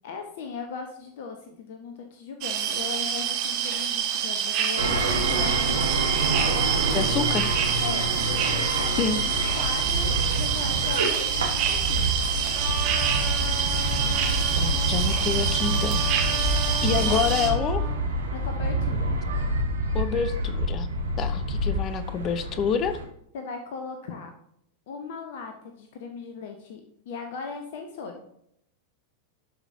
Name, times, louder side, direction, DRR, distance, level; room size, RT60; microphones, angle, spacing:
voice 1, 0.0-5.8 6.4-7.3 7.8-12.2 16.7-17.2 18.3-19.1 23.3-24.3 24.9-26.8 27.1-28.2, left 5 dB, 55° left, 4 dB, 1.0 m, -38 dB
sound 1, 2.4-17.5, right 8 dB, 40° right, 1.3 m, -27 dB
sound 2, 4.8-23.0, right 1 dB, 70° right, 1.4 m, -27 dB
voice 2, 6.9-7.5 9.0-9.2 14.5-16.1 16.8-17.8 19.9-20.9 21.2-23.0, left 7 dB, 30° left, 12 dB, 0.7 m, -27 dB
Trumpet, 12.5-18.0, right 3 dB, 25° right, 1.8 m, -37 dB
12.0 x 5.0 x 2.8 m, 0.72 s
figure-of-eight pair, 90°, 0 cm